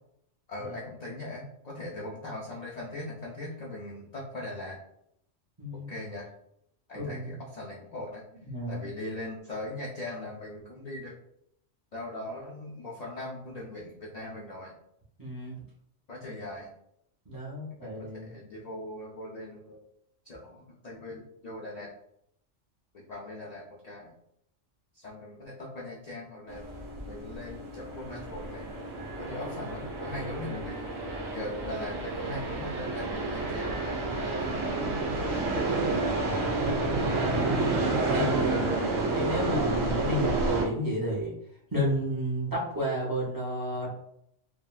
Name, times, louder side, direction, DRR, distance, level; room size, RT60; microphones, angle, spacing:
voice 1, 0.5-4.8 5.7-6.3 6.9-8.2 8.7-11.2 11.9-14.7 16.1-16.7 17.8-19.8 20.2-21.9 22.9-24.1 24.9-26.6 27.1-28.7 29.2-30.8 31.3-33.9 34.1-37.4, left 2 dB, 75° left, -3 dB, 0.3 m, -40 dB
voice 2, 5.6-5.9 7.0-7.3 8.4-8.8 15.2-15.6 17.3-18.3 38.1-41.3 41.7-43.9, equal, 25° right, -4 dB, 0.4 m, -31 dB
sound 1, 26.5-40.7, right 2 dB, 85° right, 1.1 m, -30 dB
3.4 x 2.1 x 2.3 m, 0.75 s
omnidirectional pair, 1.3 m